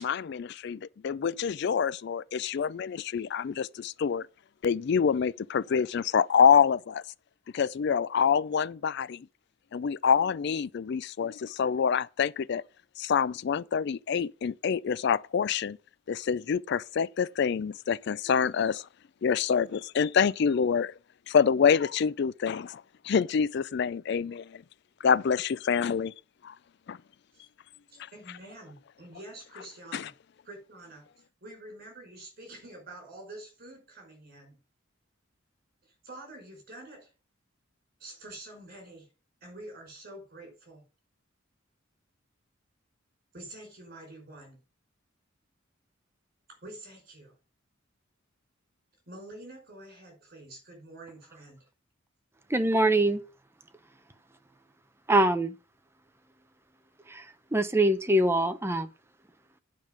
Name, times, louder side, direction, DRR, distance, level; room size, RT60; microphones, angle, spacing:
voice 1, 0.0-4.3 4.6-7.0 7.5-9.3 9.7-12.6 13.0-15.8 16.1-18.8 19.2-20.9 21.3-24.6 25.0-26.1 26.4-26.5 26.9-27.0 29.9-30.1, left 7 dB, 55° left, 0.4 m, -26 dB
voice 2, 27.9-30.2 30.4-34.6 35.8-37.1 38.0-39.1 39.4-40.9 43.3-44.6 46.6-47.3 49.1-51.7, right 1 dB, 50° right, 5.4 m, -47 dB
voice 3, 52.5-53.2 55.1-55.5 57.1-58.9, right 1 dB, 10° right, 0.7 m, -24 dB
9.3 x 5.3 x 6.6 m
head